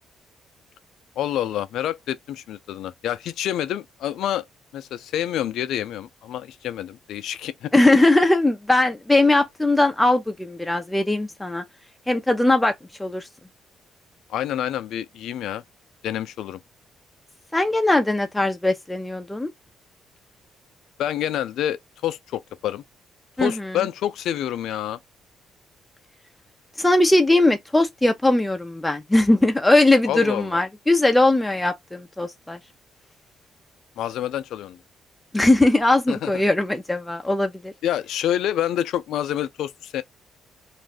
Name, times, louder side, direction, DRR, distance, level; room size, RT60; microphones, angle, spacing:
voice 1, 1.2-4.4 4.7-7.7 14.3-15.6 16.0-16.6 21.0-22.8 23.4-25.0 30.1-30.5 34.0-34.8 36.1-36.3 37.8-40.0, left 11 dB, 80° left, 0.3 m, -27 dB
voice 2, 7.7-11.6 12.1-12.7 13.0-13.3 17.5-19.5 23.4-23.8 26.8-32.6 35.3-37.7, left 2 dB, 10° left, 0.4 m, -20 dB
2.5 x 2.2 x 3.3 m
cardioid pair, 90°, 0 cm